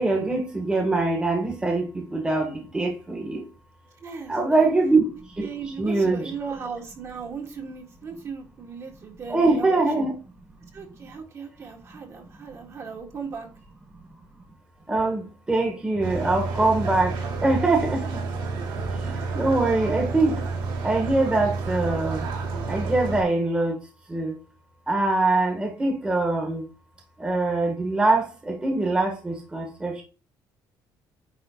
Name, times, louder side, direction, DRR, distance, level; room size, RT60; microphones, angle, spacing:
voice 1, 0.0-3.4 4.3-5.0 5.4-5.5 5.8-6.3 9.3-10.1 14.9-18.2 19.3-20.4 20.8-22.3 22.7-23.8 24.1-24.3 24.9-26.6 27.2-30.0, right 2 dB, 10° right, 2 dB, 1.6 m, -23 dB
voice 2, 4.0-4.7 5.4-10.1 10.7-13.5, right 5 dB, 35° right, 1 dB, 2.1 m, -37 dB
sound 1, 16.0-23.2, right 4 dB, 80° right, 3.1 m, -30 dB
9.9 x 3.8 x 3.9 m, 0.33 s
cardioid pair, 150°, 8 cm